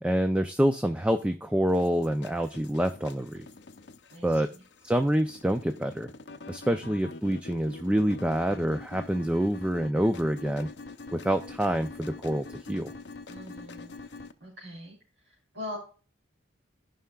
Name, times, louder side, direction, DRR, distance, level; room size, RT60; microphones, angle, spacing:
voice 1, 0.0-3.5 4.2-4.5 4.8-6.1 6.5-10.7 11.1-12.9, equal, 5° right, 7 dB, 0.4 m, -27 dB
sound 1, 1.7-14.3, left 3 dB, 60° left, 0.6 m, -45 dB
voice 2, 4.1-4.6 13.3-14.0 14.4-15.0 15.2-15.8, left 1 dB, 65° right, -6 dB, 3.5 m, -42 dB
15.0 x 5.6 x 2.3 m, 0.37 s
head